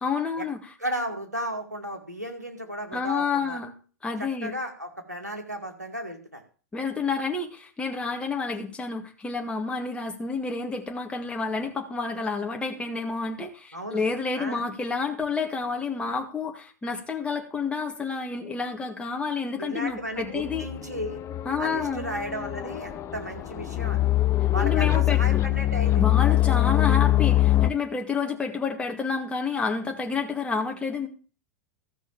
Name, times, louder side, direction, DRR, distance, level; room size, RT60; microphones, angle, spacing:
voice 1, 0.0-0.6 2.9-3.7 4.0-4.5 6.7-20.6 21.5-22.1 24.6-25.4 26.0-31.1, left 5 dB, 10° left, 3 dB, 2.1 m, -29 dB
voice 2, 0.8-3.6 4.2-6.4 13.7-14.0 14.4-14.6 19.6-21.2 21.6-24.0 24.5-26.0, equal, 90° right, 4 dB, 2.3 m, -34 dB
sound 1, 20.4-27.7, left 14 dB, 35° left, 0.8 m, -23 dB
14.0 x 6.1 x 7.1 m, 0.38 s
figure-of-eight pair, 90°, 9 cm